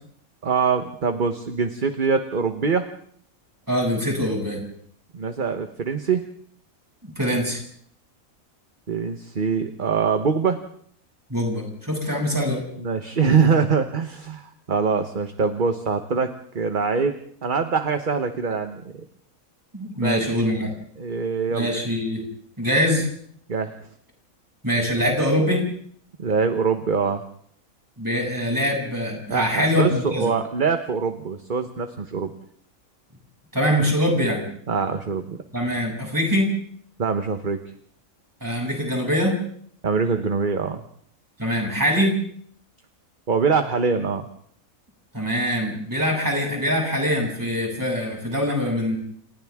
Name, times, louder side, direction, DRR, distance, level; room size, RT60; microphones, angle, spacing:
voice 1, 0.4-2.9 5.1-6.2 8.9-10.6 12.8-17.2 17.4-19.0 20.0-20.4 21.0-21.7 23.5-23.8 26.2-27.2 29.3-32.3 34.7-35.4 37.0-37.6 39.8-40.8 43.3-44.3, right 5 dB, 40° right, 7 dB, 1.2 m, -23 dB
voice 2, 3.7-4.6 7.0-7.6 11.3-12.6 19.7-20.7 21.5-22.2 22.6-23.1 24.6-25.6 28.0-30.3 33.5-34.4 35.5-36.5 38.4-39.3 41.4-42.1 45.1-49.0, equal, 15° right, -1 dB, 7.3 m, -23 dB
29.5 x 29.0 x 3.6 m, 0.63 s
omnidirectional pair, 1.4 m